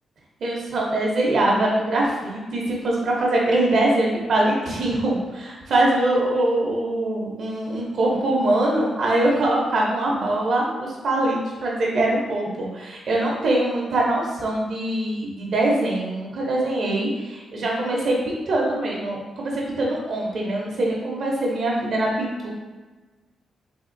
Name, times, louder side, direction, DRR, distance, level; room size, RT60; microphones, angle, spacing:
voice 1, 0.4-22.5, right 1 dB, 60° right, -3 dB, 0.7 m, -23 dB
3.5 x 2.4 x 2.6 m, 1.3 s
cardioid pair, 120°, 0 cm